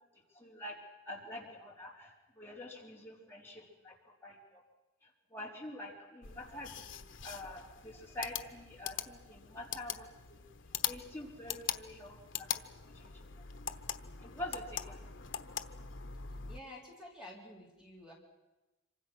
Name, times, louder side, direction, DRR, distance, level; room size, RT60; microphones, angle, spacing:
voice 1, 0.3-0.8 1.1-4.0 4.2-4.6 5.0-10.4 10.9-12.5 12.9-13.3 14.2-15.1, left 1 dB, 10° left, -3 dB, 3.8 m, -46 dB
sound 1, 6.2-16.6, left 9 dB, 75° left, 1.1 m, -42 dB
voice 2, 16.5-18.1, left 1 dB, 5° right, -3 dB, 3.6 m, -50 dB
26.5 x 25.0 x 6.2 m, 1.0 s
head